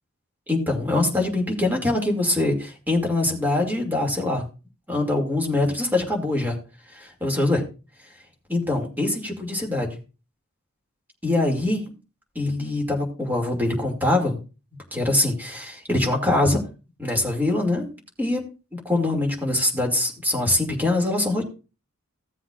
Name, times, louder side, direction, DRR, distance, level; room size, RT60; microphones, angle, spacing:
voice 1, 0.5-4.4 4.9-6.6 7.2-7.6 8.5-10.0 11.2-11.9 12.4-14.4 14.9-16.6 17.0-17.9 18.2-18.4 18.7-21.4, left 2 dB, 10° right, 1 dB, 2.4 m, -23 dB
16.0 x 7.6 x 2.5 m, 0.32 s
head